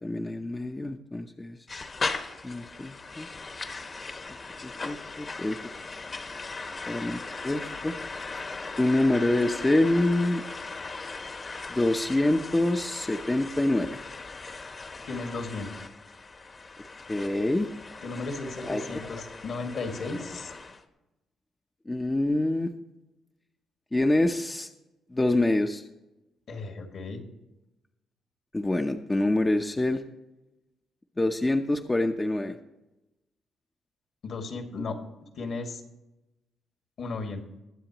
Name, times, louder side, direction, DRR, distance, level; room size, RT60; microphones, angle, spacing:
voice 1, 0.0-1.6 2.4-3.3 4.6-5.6 6.9-7.2 7.4-7.9 8.8-10.4 11.7-13.9 17.1-17.7 18.7-18.8 21.9-22.7 23.9-24.7 25.1-25.8 28.5-30.0 31.2-32.6, left 1 dB, 15° left, 4 dB, 0.7 m, -26 dB
sound 1, 1.7-20.8, left 3 dB, 35° left, 1.2 m, -38 dB
voice 2, 15.1-15.7 18.0-20.5 26.5-27.2 34.2-35.0 35.4-35.8 37.0-37.4, left 3 dB, 60° left, 4 dB, 2.0 m, -35 dB
22.0 x 7.6 x 3.0 m, 0.98 s
cardioid pair, 90°, 0 cm